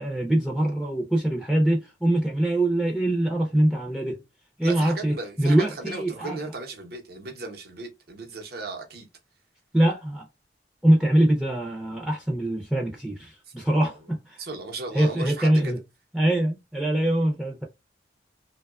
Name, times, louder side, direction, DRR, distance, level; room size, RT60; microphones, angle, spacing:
voice 1, 0.0-4.2 4.6-6.4 9.7-10.2 10.8-14.4 14.9-15.8 16.1-17.6, right 1 dB, 5° right, 0.5 m, -23 dB
voice 2, 4.6-9.1 13.4-13.7 14.4-15.8, right 3 dB, 55° right, 0.8 m, -36 dB
2.9 x 2.2 x 2.3 m
head